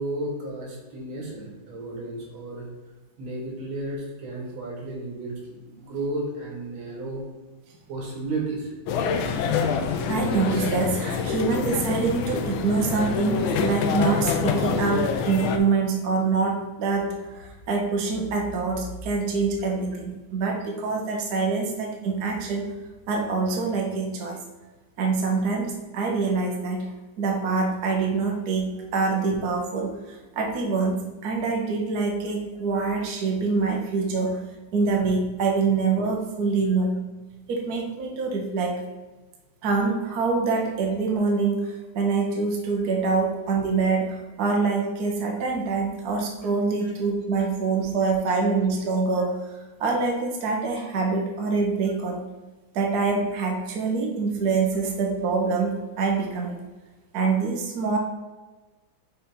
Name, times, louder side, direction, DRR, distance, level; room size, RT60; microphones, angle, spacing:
voice 1, 0.0-2.7 3.2-7.2 7.9-8.7, right 2 dB, 85° right, -2 dB, 2.4 m, -33 dB
sound 1, 8.9-15.6, left 6 dB, 85° left, 1.4 m, -26 dB
voice 2, 10.1-22.6 23.1-24.4 25.0-26.9 27.2-30.0 30.3-34.4 34.7-36.9 37.5-38.8 39.6-49.4 49.8-52.2 52.7-56.6 57.1-58.0, right 4 dB, 60° right, 1 dB, 1.3 m, -25 dB
6.6 x 3.4 x 4.4 m, 1.2 s
omnidirectional pair, 2.2 m